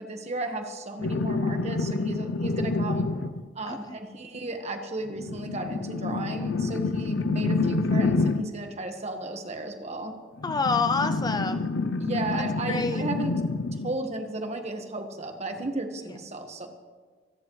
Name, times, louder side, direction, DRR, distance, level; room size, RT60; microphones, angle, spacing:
voice 1, 0.0-3.1 3.5-10.2 12.0-13.4 13.8-16.7, right 2 dB, 35° right, 5 dB, 1.5 m, -34 dB
sound 1, 1.0-3.5 5.1-8.6 10.4-14.0 15.6-15.7, left 3 dB, 85° left, 0.6 m, -28 dB
voice 2, 3.7-4.0 10.4-11.7 12.7-13.1, left 4 dB, 20° left, 9 dB, 0.4 m, -27 dB
27.0 x 10.5 x 3.2 m, 1.5 s
head